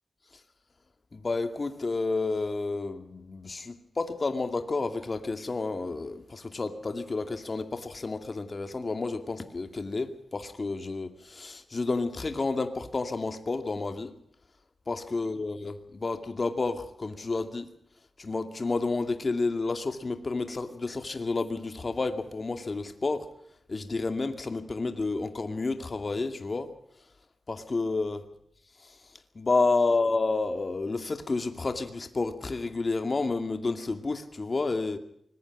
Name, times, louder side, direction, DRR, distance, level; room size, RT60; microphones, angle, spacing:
voice 1, 1.1-14.1 14.9-17.7 18.2-23.3 23.7-26.7 27.5-28.2 28.8-28.9 29.3-35.0, left 3 dB, 45° left, 2.4 m, -30 dB
25.0 x 21.0 x 6.1 m
wide cardioid pair, 90°, 0 cm